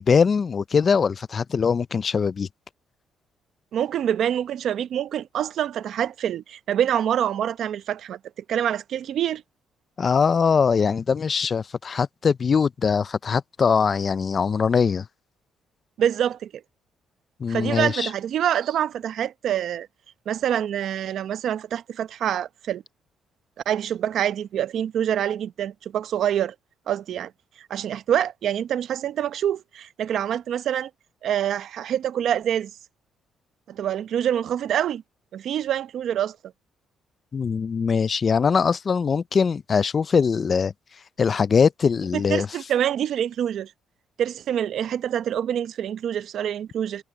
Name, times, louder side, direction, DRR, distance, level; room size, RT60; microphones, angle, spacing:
voice 1, 0.0-2.5 10.0-15.1 17.4-18.1 37.3-40.7 41.2-42.5, left 6 dB, 35° left, 0.4 m, -22 dB
voice 2, 3.7-8.2 8.5-9.4 16.0-16.6 17.5-19.9 20.3-22.8 23.7-26.5 26.9-27.3 27.6-30.9 31.2-32.7 33.7-35.0 35.3-36.4 42.1-43.7 44.2-47.0, right 10 dB, 60° right, 0.7 m, -26 dB
cardioid pair, 135°, 0 cm